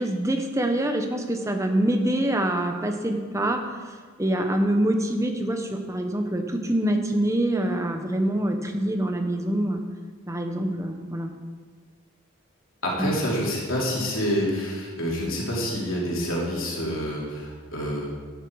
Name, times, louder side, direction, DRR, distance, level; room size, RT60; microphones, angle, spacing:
voice 1, 0.0-3.6 4.2-9.8 10.3-11.3 13.0-13.1, right 1 dB, 15° right, 4 dB, 1.0 m, -25 dB
voice 2, 12.8-18.1, equal, 70° left, -4 dB, 3.1 m, -27 dB
12.0 x 10.0 x 4.8 m, 1.5 s
head